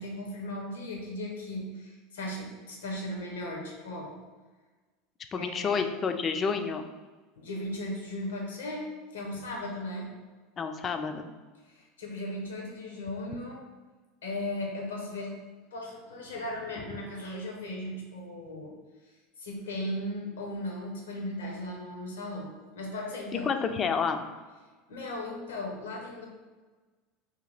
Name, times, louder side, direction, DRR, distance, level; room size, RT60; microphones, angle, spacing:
voice 1, 0.0-4.2 5.3-5.8 7.4-8.8 9.1-10.1 11.6-13.6 14.2-15.3 15.7-18.7 19.4-22.5 22.8-23.5 24.9-26.3, left 1 dB, 75° left, 0 dB, 0.8 m, -37 dB
voice 2, 5.3-6.9 10.6-11.3 23.5-24.2, left 5 dB, 35° left, 7 dB, 0.4 m, -29 dB
2.9 x 2.8 x 3.9 m, 1.3 s
figure-of-eight pair, 80°, 0 cm